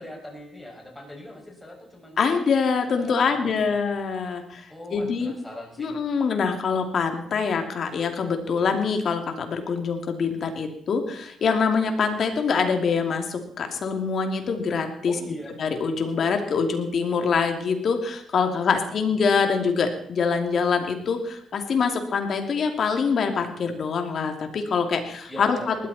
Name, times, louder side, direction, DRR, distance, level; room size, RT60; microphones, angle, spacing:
voice 1, 0.0-2.2 2.8-3.7 4.7-5.9 15.1-15.6 18.4-19.1 25.3-25.9, left 1 dB, 10° left, 0 dB, 6.7 m, -41 dB
voice 2, 2.2-5.3 5.8-15.1 15.6-25.9, left 5 dB, 55° left, 5 dB, 2.8 m, -24 dB
19.5 x 13.5 x 4.4 m, 0.69 s
cardioid pair, 90°, 0 cm